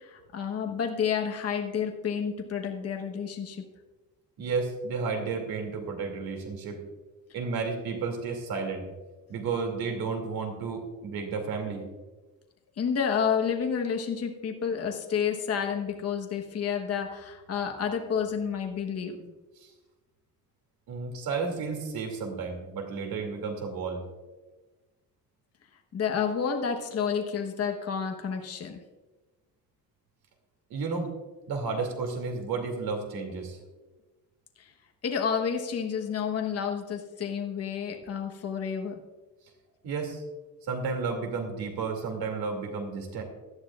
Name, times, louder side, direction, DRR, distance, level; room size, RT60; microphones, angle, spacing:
voice 1, 0.0-3.6 12.8-19.3 25.9-28.8 34.6-34.7 35.0-39.0, left 7 dB, 40° left, 4 dB, 1.2 m, -30 dB
voice 2, 4.4-6.8 7.3-8.9 9.3-11.9 19.6-19.7 20.9-24.0 30.7-31.1 31.5-33.6 39.8-40.2 40.6-43.2, right 4 dB, 80° right, 3 dB, 2.6 m, -32 dB
17.5 x 12.0 x 2.4 m, 1.2 s
cardioid pair, 160°, 36 cm